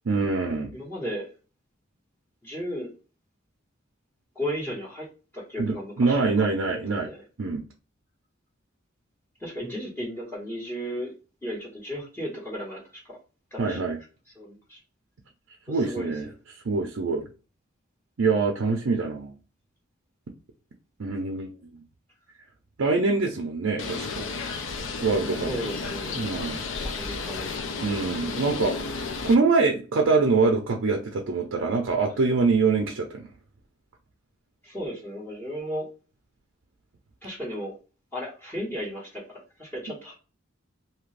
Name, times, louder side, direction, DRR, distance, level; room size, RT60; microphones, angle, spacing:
voice 1, 0.1-0.7 5.6-7.1 7.4-7.6 13.6-14.0 15.7-16.3 16.6-17.3 18.2-19.4 21.0-21.7 22.8-24.3 25.0-25.5 26.1-26.6 27.8-28.8 29.2-33.3, right 4 dB, 70° right, 0.5 m, -24 dB
voice 2, 0.7-1.3 2.4-2.9 4.3-5.1 5.3-6.5 6.9-7.2 9.4-11.1 11.4-12.8 13.1-13.2 13.5-13.8 14.3-14.8 15.7-16.1 25.3-26.3 26.8-27.5 34.6-35.9 37.2-37.8 38.1-40.1, equal, 10° left, 1.2 m, -34 dB
Bird, 23.8-29.3, left 4 dB, 70° left, 0.5 m, -33 dB
2.8 x 2.5 x 3.2 m
head